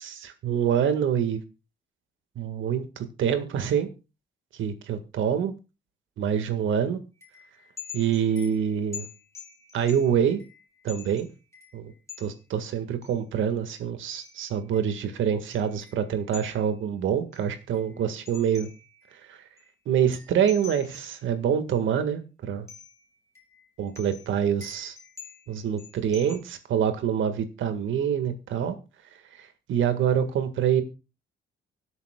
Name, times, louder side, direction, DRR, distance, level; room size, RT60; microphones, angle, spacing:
voice 1, 0.0-1.4 2.3-3.9 4.6-5.5 6.2-7.0 7.9-9.1 9.7-10.4 10.8-11.3 11.7-11.9 12.2-18.7 19.2-19.4 19.8-22.2 22.5-22.7 23.8-24.9 25.5-28.7 29.4-30.8, right 8 dB, 75° right, 9 dB, 1.8 m, -26 dB
sound 1, 7.2-12.4 13.0-13.1 14.1-16.8 17.3-19.2 19.6-19.7 20.0-21.2 21.7-21.8 22.7-23.0 23.3-26.4, left 6 dB, 15° left, 3.4 m, -46 dB
24.5 x 8.2 x 2.3 m, 0.30 s
cardioid pair, 90°, 20 cm